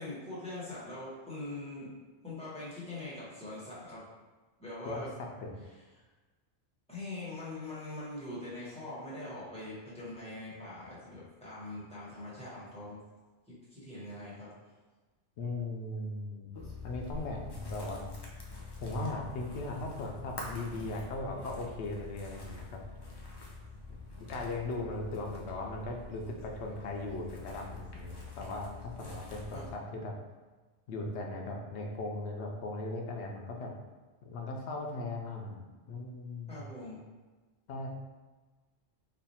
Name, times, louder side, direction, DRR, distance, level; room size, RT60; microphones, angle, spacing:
voice 1, 0.0-1.9 2.2-4.0 4.6-5.1 6.9-13.0 13.5-14.5 29.5-29.6 36.5-37.0, left 2 dB, 5° left, -10 dB, 1.2 m, -42 dB
voice 2, 15.4-18.1 18.8-22.8 24.3-30.1 30.9-33.7 34.2-36.6 37.7-37.9, left 2 dB, 75° left, 1 dB, 0.9 m, -38 dB
sound 1, 16.5-29.7, left 3 dB, 35° left, 0.4 m, -46 dB
3.2 x 2.2 x 4.1 m, 1.3 s
omnidirectional pair, 1.2 m